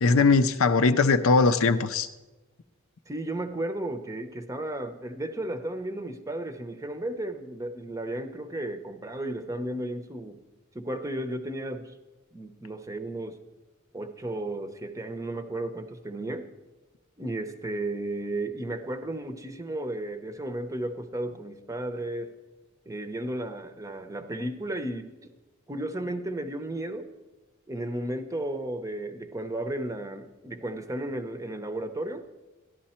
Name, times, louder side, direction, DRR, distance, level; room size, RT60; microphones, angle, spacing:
voice 1, 0.0-2.1, left 4 dB, 65° left, 0.6 m, -20 dB
voice 2, 3.1-10.4 10.7-11.9 12.3-13.4 13.9-16.5 17.2-22.3 22.9-25.3 25.7-27.1 27.7-32.2, right 1 dB, 15° right, 0.7 m, -34 dB
13.5 x 11.5 x 4.3 m
head